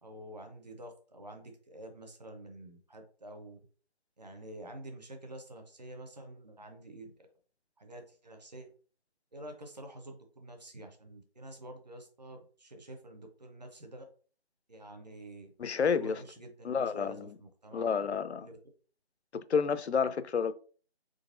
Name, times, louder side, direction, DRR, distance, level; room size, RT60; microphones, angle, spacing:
voice 1, 0.0-3.6 4.2-7.3 7.8-8.7 9.3-14.0 14.7-15.5 15.9-18.5, right 1 dB, 40° right, 0.8 m, -48 dB
voice 2, 15.6-16.2 16.6-17.3 17.7-18.5 19.3-20.5, left 6 dB, 85° left, 0.5 m, -30 dB
3.9 x 3.8 x 2.5 m
figure-of-eight pair, 170°, 32 cm